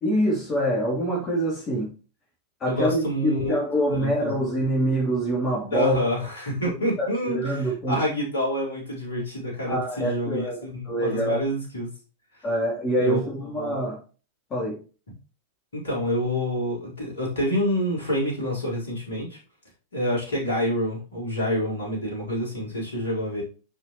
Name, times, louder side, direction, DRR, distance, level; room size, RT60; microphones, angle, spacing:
voice 1, 0.0-1.9 2.6-6.0 7.0-8.0 9.6-11.4 12.4-14.0 14.5-14.8, equal, 25° left, 3.1 m, -25 dB
voice 2, 2.6-3.5 3.9-4.5 5.7-11.9 12.3-12.4 13.0-13.2 13.6-13.8 15.7-19.4 19.9-23.4, equal, 70° left, 4.5 m, -27 dB
7.1 x 6.3 x 3.1 m
figure-of-eight pair, 90°, 0 cm